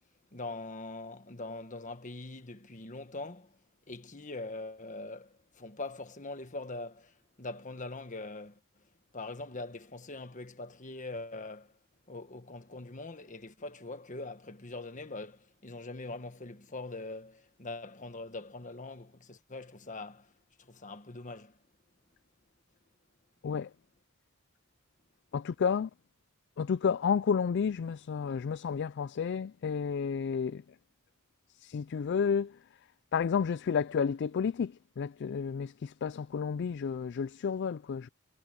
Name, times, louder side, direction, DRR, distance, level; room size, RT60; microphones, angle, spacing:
voice 1, 0.3-3.6 3.9-8.6 9.1-11.8 12.1-20.3 20.6-21.6, left 2 dB, 35° left, 1.5 m, -42 dB
voice 2, 25.3-25.9 26.6-30.6 31.6-32.6 33.1-38.1, left 6 dB, 55° left, 0.3 m, -31 dB
head